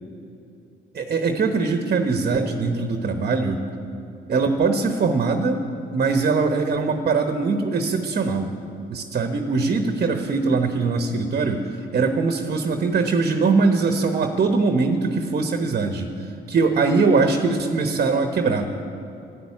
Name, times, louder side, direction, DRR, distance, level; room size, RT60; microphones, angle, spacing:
voice 1, 0.9-3.6 4.3-5.6 5.9-8.5 8.9-16.1 16.5-18.8, right 4 dB, 45° right, 6 dB, 1.0 m, -22 dB
12.0 x 10.5 x 8.5 m, 2.8 s
cardioid pair, 90°, 20 cm